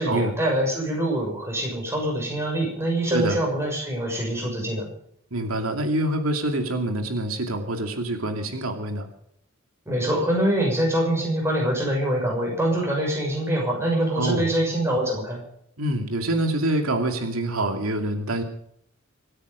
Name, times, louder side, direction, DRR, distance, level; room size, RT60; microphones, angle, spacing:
voice 1, 0.0-4.9 9.9-15.4, right 1 dB, 10° right, 0 dB, 6.5 m, -24 dB
voice 2, 3.1-3.4 5.3-9.1 14.1-14.5 15.8-18.4, right 1 dB, 85° right, 4 dB, 2.6 m, -26 dB
26.0 x 9.8 x 5.2 m, 0.69 s
head